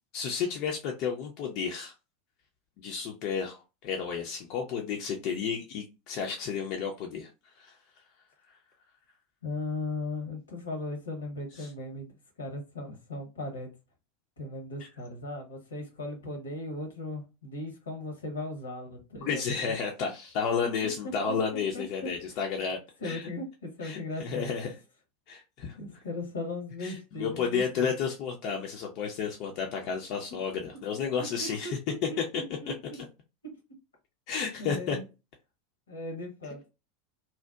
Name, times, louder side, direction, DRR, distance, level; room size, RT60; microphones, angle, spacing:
voice 1, 0.1-1.9 2.8-7.3 7.6-7.7 11.6-11.7 19.2-23.2 23.8-24.7 25.3-25.9 26.8-31.8 34.3-35.0, left 6 dB, 50° left, 0.4 m, -32 dB
voice 2, 9.4-12.1 12.4-13.7 14.4-19.7 21.7-21.8 22.3-22.4 23.0-24.5 25.7-27.9 31.2-32.7 34.6-35.0 35.9-36.7, left 2 dB, 75° left, 0.7 m, -38 dB
2.6 x 2.1 x 2.2 m
figure-of-eight pair, 85°, 0 cm